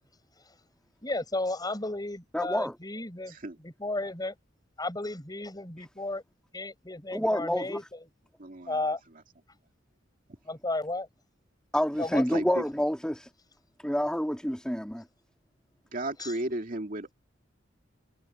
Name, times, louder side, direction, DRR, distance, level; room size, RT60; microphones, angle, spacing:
voice 1, 1.0-4.3 4.8-6.2 6.5-8.0 8.7-9.0 10.5-11.1 12.0-12.6 16.2-16.3, left 2 dB, 20° left, 7.0 m, -34 dB
voice 2, 2.3-2.7 7.1-7.8 11.7-13.3 13.8-15.0, equal, 5° left, 2.5 m, -28 dB
voice 3, 8.4-8.8 12.3-12.6 15.9-17.1, right 1 dB, 45° right, 2.4 m, -34 dB
head